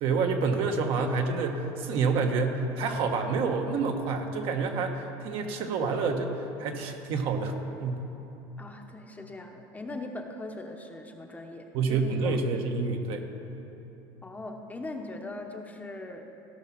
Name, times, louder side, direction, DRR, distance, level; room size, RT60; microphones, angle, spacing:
voice 1, 0.0-7.5 7.8-8.0 11.7-13.2, right 4 dB, 60° right, 3 dB, 1.2 m, -28 dB
voice 2, 8.6-12.4 14.2-16.3, left 2 dB, 15° left, 3 dB, 1.0 m, -40 dB
16.5 x 5.8 x 6.0 m, 3.0 s
supercardioid pair, 110°, 10 cm